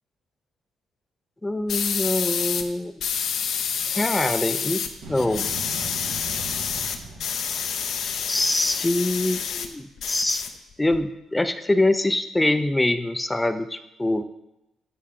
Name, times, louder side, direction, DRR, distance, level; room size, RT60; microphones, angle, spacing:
voice 1, 1.4-2.9 3.9-4.8 5.1-5.5 8.3-10.5 10.8-14.2, left 1 dB, 15° left, 10 dB, 0.4 m, -24 dB
sound 1, 1.7-2.7 3.0-4.9 5.2-9.7 10.0-11.0, left 7 dB, 70° left, 0.6 m, -28 dB
sound 2, 5.0-8.5, right 2 dB, 90° right, 1.5 m, -39 dB
8.6 x 5.5 x 3.7 m, 0.91 s
cardioid pair, 90°, 0 cm